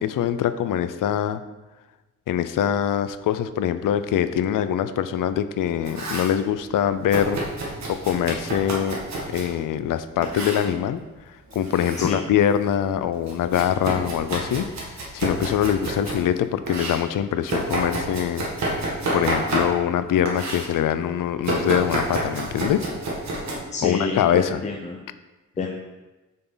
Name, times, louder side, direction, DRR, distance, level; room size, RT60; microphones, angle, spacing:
voice 1, 0.0-1.4 2.3-7.4 7.9-9.0 9.3-11.0 11.5-14.7 15.1-18.5 18.7-18.8 19.1-22.9 23.8-24.6, left 10 dB, 90° left, 12 dB, 0.5 m, -23 dB
Domestic sounds home sounds, 5.6-6.4 7.1-9.5 10.2-10.7 11.5-12.1 12.5-16.2 16.7-20.0 20.3-20.7 21.4-23.5, right 2 dB, 60° right, 1.8 m, -29 dB
voice 2, 12.0-12.3 23.5-25.0 25.6-25.8, left 3 dB, 20° left, 1 dB, 0.6 m, -29 dB
7.5 x 5.9 x 3.9 m, 1.1 s
wide cardioid pair, 160°, 31 cm